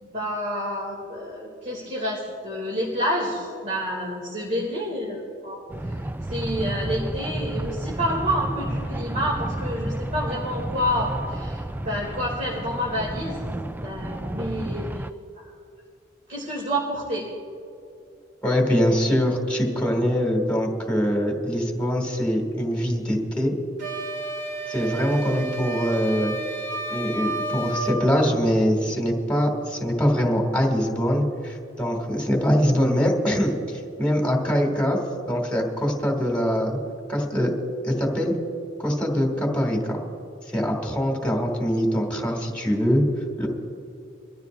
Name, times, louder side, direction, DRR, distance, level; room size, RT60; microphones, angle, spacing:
voice 1, 0.0-5.6 5.9-13.4 13.8-15.0 15.4-15.5 16.3-17.3, equal, 40° right, -4 dB, 2.4 m, -29 dB
sound 1, 5.7-15.1, right 1 dB, 10° right, 0.3 m, -31 dB
voice 2, 18.4-23.5 24.7-26.4 26.9-35.0 35.3-36.8 37.1-37.5 37.8-38.3 38.8-40.0 40.5-43.0 43.4-43.5, equal, 5° left, 0 dB, 2.3 m, -23 dB
sound 2, 23.8-28.0, right 3 dB, 65° right, 2.3 m, -31 dB
24.0 x 14.5 x 2.6 m, 2.4 s
head